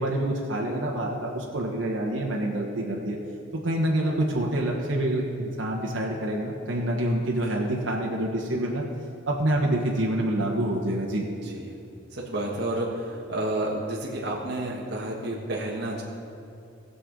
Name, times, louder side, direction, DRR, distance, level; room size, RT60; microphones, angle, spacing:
voice 1, 0.0-3.2 3.5-8.8 9.3-11.3, right 1 dB, 75° right, -2 dB, 1.3 m, -27 dB
voice 2, 11.3-11.7 12.1-16.0, right 1 dB, 55° right, -3 dB, 1.2 m, -30 dB
19.0 x 6.9 x 3.8 m, 2.6 s
head